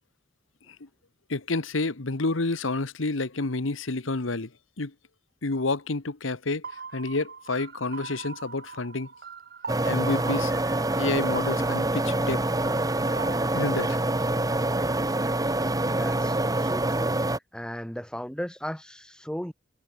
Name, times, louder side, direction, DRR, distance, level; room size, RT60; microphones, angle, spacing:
voice 1, 1.3-4.5 4.8-4.9 5.4-9.1 9.8-10.5 11.0-12.4 13.0-13.1 13.5-14.0, left 3 dB, 90° left, 1.3 m, -29 dB
sound 1, 6.6-13.5, right 5 dB, 55° right, 2.9 m, -41 dB
sound 2, 9.7-17.4, right 1 dB, 20° right, 2.2 m, -26 dB
voice 2, 15.4-19.5, equal, 5° left, 6.7 m, -37 dB
head